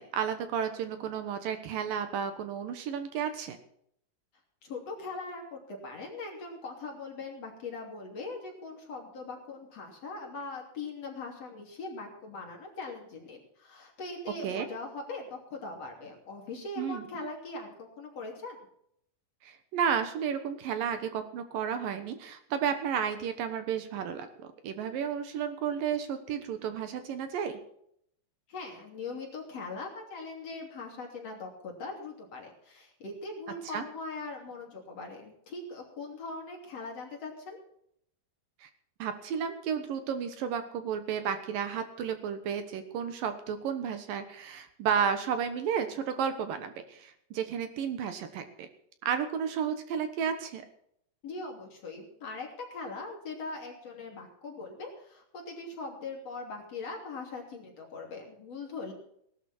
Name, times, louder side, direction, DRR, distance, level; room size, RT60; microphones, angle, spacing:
voice 1, 0.0-3.6 14.4-14.7 16.8-17.1 19.4-27.6 33.7-33.8 38.6-38.7 39.0-48.7 49.0-50.6, right 7 dB, 70° right, 9 dB, 2.8 m, -32 dB
voice 2, 4.6-18.6 28.5-37.6 51.2-58.9, left 3 dB, 45° left, 0 dB, 3.8 m, -41 dB
18.5 x 12.0 x 4.4 m, 0.70 s
omnidirectional pair, 4.3 m